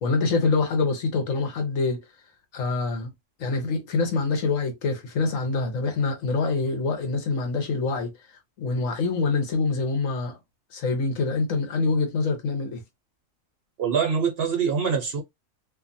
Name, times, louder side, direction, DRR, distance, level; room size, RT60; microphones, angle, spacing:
voice 1, 0.0-2.0 2.5-3.1 3.4-8.1 8.6-10.4 10.7-12.8, left 3 dB, 75° left, 1.2 m, -25 dB
voice 2, 13.8-15.2, right 6 dB, 55° right, 0.7 m, -24 dB
2.6 x 2.4 x 2.5 m
omnidirectional pair, 1.4 m